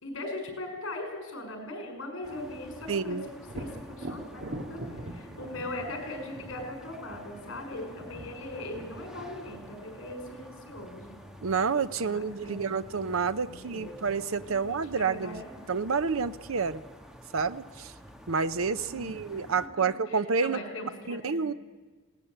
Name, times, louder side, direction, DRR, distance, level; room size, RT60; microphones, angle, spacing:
voice 1, 0.0-11.2 12.0-12.7 13.5-13.9 14.4-14.7 15.0-15.6 18.9-21.6, left 1 dB, 70° left, 5 dB, 5.9 m, -40 dB
sound 1, 2.2-19.7, equal, 5° right, 1.5 m, -49 dB
voice 2, 2.9-3.2 11.4-15.4 15.7-16.8 17.3-17.9 18.3-20.6 21.1-21.5, right 5 dB, 75° right, 13 dB, 0.7 m, -29 dB
Thunder, 3.5-11.1 14.8-14.9 15.4-16.2, right 1 dB, 60° right, 2.0 m, -44 dB
20.0 x 18.0 x 8.9 m, 1.3 s
head